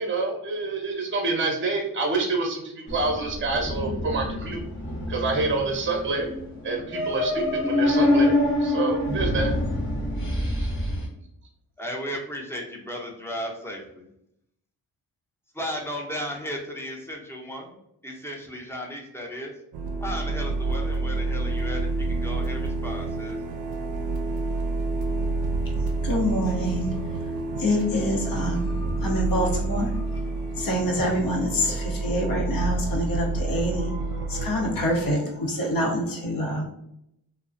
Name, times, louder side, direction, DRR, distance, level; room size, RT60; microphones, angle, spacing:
voice 1, 0.0-4.6 5.1-6.3 6.6-8.3 8.6-9.5 10.3-10.7, right 3 dB, 30° right, 1 dB, 0.7 m, -27 dB
sound 1, 2.9-11.1, left 1 dB, 30° left, 0.9 m, -26 dB
voice 2, 11.8-14.1 15.5-19.5 20.0-23.4, equal, 5° left, -1 dB, 0.7 m, -35 dB
sound 2, 19.7-35.1, right 3 dB, 65° right, 0.5 m, -28 dB
voice 3, 26.0-30.2 30.6-36.7, equal, 60° left, -1 dB, 0.8 m, -26 dB
2.3 x 2.1 x 2.5 m, 0.77 s
supercardioid pair, 50°, 40 cm